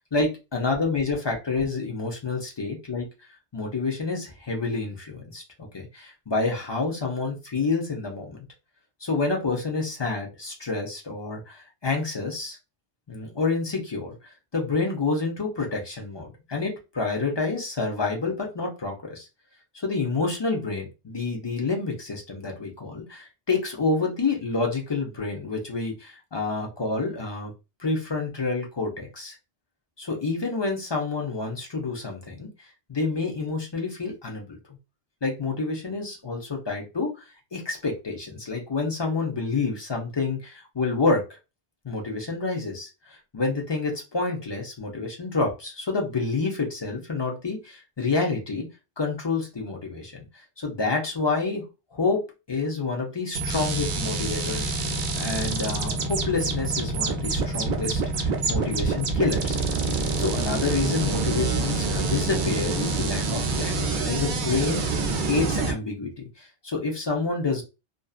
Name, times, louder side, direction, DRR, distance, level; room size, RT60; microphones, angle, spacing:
voice 1, 0.1-3.0 3.5-8.5 9.0-12.6 13.1-19.3 19.7-27.5 27.8-29.3 30.0-32.5 32.9-34.6 35.2-37.1 37.5-41.2 41.8-48.6 49.0-51.6 51.9-59.6 60.2-67.6, left 3 dB, 35° left, 0 dB, 0.5 m, -28 dB
sound 1, 53.3-65.7, right 3 dB, 60° right, 0.6 m, -26 dB
2.6 x 2.3 x 2.3 m, 0.28 s
omnidirectional pair, 1.1 m